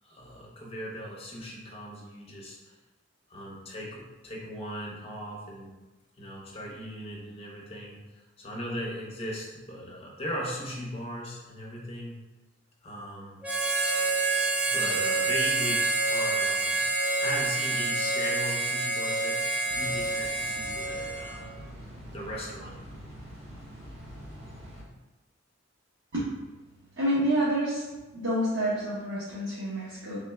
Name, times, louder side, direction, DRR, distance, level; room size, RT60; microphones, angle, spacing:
voice 1, 0.0-2.7 3.3-5.8 6.2-8.0 8.4-12.2 12.8-13.4 14.7-16.9 17.2-21.6 22.1-22.8, equal, 30° left, -3 dB, 0.8 m, -38 dB
Harmonica, 13.4-21.5, right 2 dB, 5° right, 0.4 m, -28 dB
sound 1, 19.7-24.8, equal, 30° right, 1.1 m, -45 dB
voice 2, 27.0-27.9 28.1-30.2, right 1 dB, 85° right, -10 dB, 1.1 m, -28 dB
4.3 x 3.7 x 2.3 m, 1.1 s
head